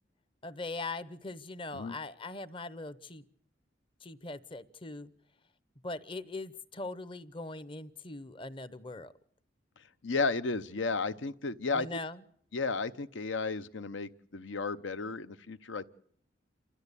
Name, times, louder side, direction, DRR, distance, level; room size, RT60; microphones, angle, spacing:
voice 1, 0.4-3.2 4.0-5.1 5.8-9.1 11.7-12.2, left 2 dB, 25° left, 15 dB, 0.8 m, -41 dB
voice 2, 10.0-11.9 12.5-15.9, left 4 dB, 75° left, 13 dB, 0.8 m, -33 dB
28.0 x 13.0 x 8.3 m, 0.65 s
head